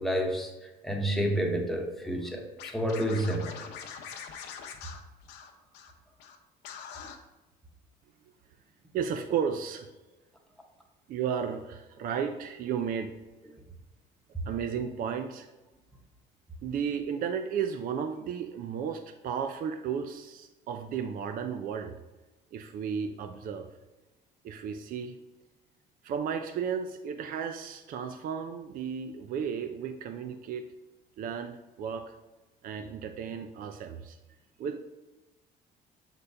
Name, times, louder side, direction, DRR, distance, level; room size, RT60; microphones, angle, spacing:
voice 1, 0.0-2.5 2.7-3.6, equal, ahead, 1 dB, 1.0 m, -29 dB
Scratching (performance technique), 2.6-5.9 6.2-6.4 6.6-7.2, left 7 dB, 85° left, 0.7 m, -43 dB
voice 2, 8.9-9.9 11.1-13.1 14.5-15.5 16.6-22.0 22.5-23.7 24.4-25.2 26.0-30.7 31.2-32.1 32.6-34.2 34.6-34.8, right 7 dB, 55° right, 7 dB, 0.4 m, -34 dB
6.9 x 4.1 x 3.3 m, 1.1 s
cardioid pair, 110°, 17 cm